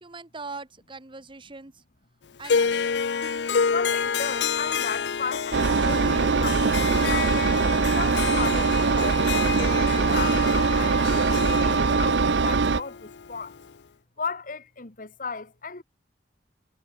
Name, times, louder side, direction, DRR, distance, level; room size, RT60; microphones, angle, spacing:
voice 1, 0.0-1.8 2.4-3.0, right 4 dB, 30° right, 1.2 m, -41 dB
Harp, 2.4-13.7, left 6 dB, 70° left, 0.6 m, -29 dB
voice 2, 3.7-7.3 7.8-13.5 14.2-15.8, left 5 dB, 50° left, 1.6 m, -35 dB
Engine, 5.5-12.8, right 4 dB, 75° right, 0.7 m, -22 dB
head